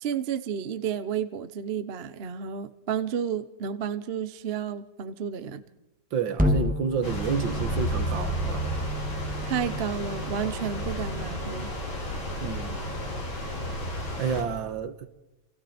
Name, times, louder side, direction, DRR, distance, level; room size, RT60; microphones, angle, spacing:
voice 1, 0.0-5.6 9.4-11.7, right 8 dB, 45° right, 0.8 m, -31 dB
voice 2, 6.1-8.7 12.4-12.8 14.2-15.1, right 7 dB, 75° right, 2.0 m, -30 dB
sound 1, 6.3-10.7, left 2 dB, 5° right, 1.7 m, -31 dB
sound 2, 7.0-14.4, equal, 85° left, 5.2 m, -31 dB
29.0 x 26.0 x 4.3 m
omnidirectional pair, 2.2 m